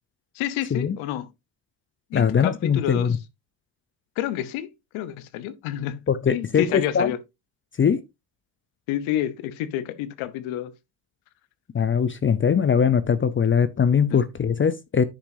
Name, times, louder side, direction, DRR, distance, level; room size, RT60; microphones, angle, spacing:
voice 1, 0.3-1.3 2.1-3.1 4.2-7.2 8.9-10.7 14.1-14.2, left 12 dB, 85° left, 1.0 m, -29 dB
voice 2, 2.1-3.2 6.1-7.1 7.8-8.0 11.7-15.0, left 7 dB, 25° left, 0.5 m, -21 dB
10.0 x 5.9 x 2.7 m
cardioid pair, 95°, 47 cm